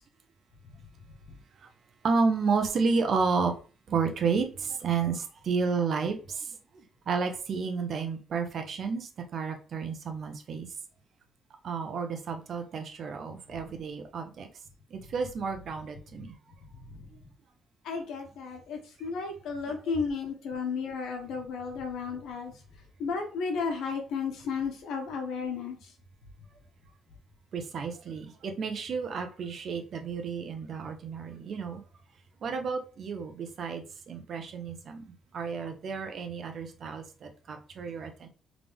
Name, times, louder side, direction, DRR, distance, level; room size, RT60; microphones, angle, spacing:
voice 1, 2.0-3.5 3.9-6.5 7.1-10.7 11.6-14.5 14.9-16.3 27.5-31.8 32.4-38.3, right 5 dB, 60° right, 1.0 m, -31 dB
voice 2, 17.8-22.5 23.0-25.8, left 5 dB, 80° left, 1.3 m, -33 dB
3.7 x 3.5 x 3.6 m
cardioid pair, 90°, 0 cm